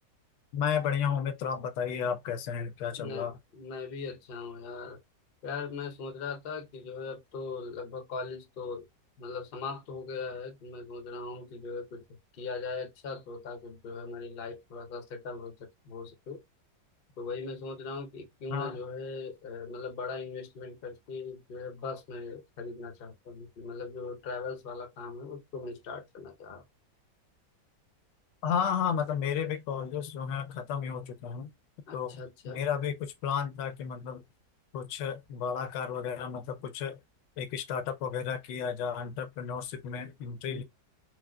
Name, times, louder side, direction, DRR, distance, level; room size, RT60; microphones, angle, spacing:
voice 1, 0.5-3.4 18.5-18.8 28.4-31.5 31.9-32.2 32.5-34.2 34.7-37.0 37.4-40.6, left 7 dB, 80° left, 1.2 m, -32 dB
voice 2, 3.0-5.0 5.4-8.8 9.2-12.0 12.3-16.4 17.2-26.6 31.9-32.6 40.5-40.6, left 4 dB, 60° left, 0.6 m, -40 dB
4.5 x 2.0 x 2.2 m
omnidirectional pair, 2.0 m